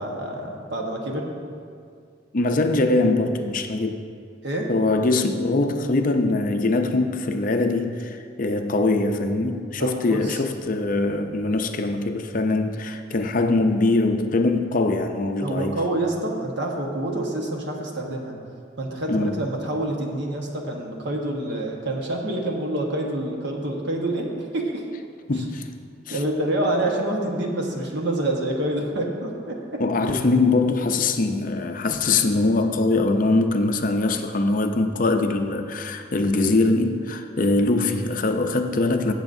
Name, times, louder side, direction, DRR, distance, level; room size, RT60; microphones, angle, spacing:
voice 1, 0.0-1.3 4.4-4.7 9.8-10.4 15.4-18.4 18.8-24.8 25.4-25.5 26.1-29.8, right 1 dB, 60° right, 0 dB, 1.2 m, -27 dB
voice 2, 2.3-4.0 4.7-15.8 19.1-19.5 25.3-25.7 26.1-26.2 29.8-39.1, left 2 dB, 45° left, 6 dB, 0.5 m, -22 dB
16.0 x 7.0 x 2.7 m, 2.2 s
head